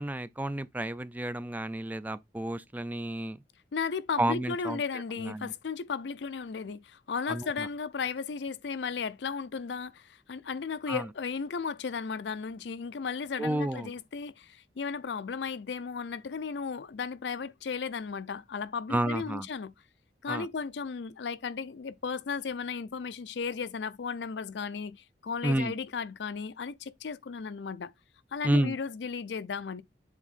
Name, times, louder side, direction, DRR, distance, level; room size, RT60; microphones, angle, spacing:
voice 1, 0.0-3.4 4.2-4.8 5.2-5.5 7.3-7.7 10.9-11.1 13.4-13.9 18.9-19.5 20.3-20.5 25.4-25.7 28.4-28.8, right 1 dB, 10° right, 0.4 m, -30 dB
voice 2, 3.7-19.7 20.2-27.9 28.3-29.8, left 5 dB, 75° left, 0.5 m, -35 dB
7.3 x 3.6 x 4.1 m
head